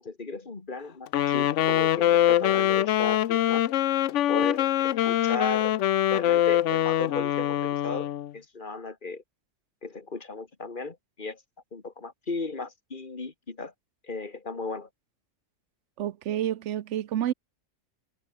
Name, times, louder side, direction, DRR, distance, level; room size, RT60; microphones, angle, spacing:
voice 1, 0.0-3.6 4.3-5.8 6.1-9.2 9.8-11.4 11.7-13.7 14.0-14.9, left 3 dB, 40° left, 2.0 m, -35 dB
Wind instrument woodwind instrument, 1.1-8.3, left 12 dB, 75° left, 1.0 m, -24 dB
voice 2, 16.0-17.3, right 11 dB, 70° right, 1.1 m, -29 dB
omnidirectional pair, 1.3 m